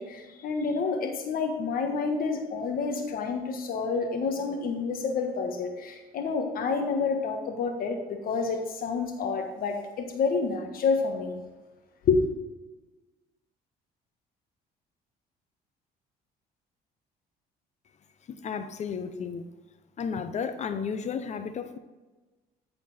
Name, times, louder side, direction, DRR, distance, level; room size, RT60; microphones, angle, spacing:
voice 1, 0.0-11.4 12.1-12.2, left 4 dB, 60° left, 4 dB, 1.4 m, -29 dB
voice 2, 18.3-19.4 20.0-21.8, left 6 dB, 45° left, 10 dB, 0.7 m, -33 dB
13.0 x 4.4 x 4.2 m, 1.2 s
cardioid pair, 110°, 17 cm